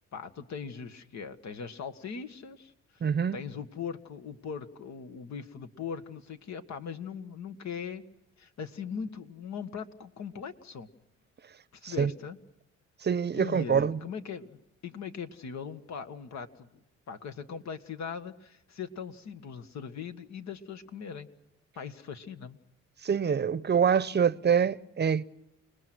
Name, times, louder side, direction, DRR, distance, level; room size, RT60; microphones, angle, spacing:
voice 1, 0.1-2.7 3.0-8.0 8.4-10.9 11.7-12.4 13.4-16.7 17.1-21.3 21.8-22.6, left 6 dB, 65° left, 1.7 m, -40 dB
voice 2, 3.0-3.4 11.8-12.1 13.0-14.0 23.0-25.2, right 7 dB, 35° right, 0.8 m, -25 dB
29.5 x 20.0 x 6.2 m
cardioid pair, 90°, 30 cm